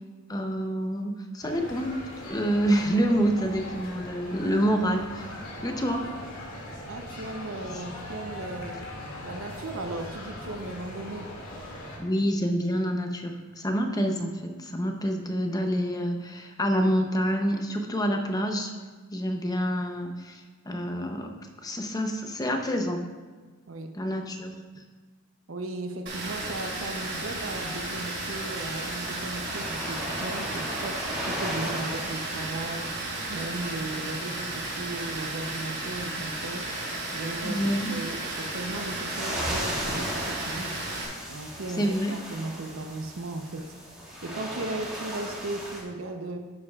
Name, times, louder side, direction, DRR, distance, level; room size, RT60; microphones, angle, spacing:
voice 1, 0.3-1.9 2.2-5.3 5.6-6.1 12.0-18.7 19.1-21.3 21.6-23.0 23.9-24.6 37.4-37.9 41.8-42.2, equal, 20° left, 4 dB, 0.7 m, -27 dB
sound 1, 1.4-12.0, left 1 dB, 80° left, 2.3 m, -40 dB
voice 2, 6.9-8.9 9.2-11.3 23.7-24.0 25.5-36.7 37.1-40.8 41.3-43.7 44.2-46.4, right 2 dB, 70° right, 6 dB, 0.7 m, -36 dB
Water, 26.1-41.0, right 2 dB, 55° right, 2.3 m, -34 dB
sound 2, 26.7-45.8, equal, 5° right, 1.9 m, -38 dB
11.0 x 7.9 x 2.4 m, 1.4 s
head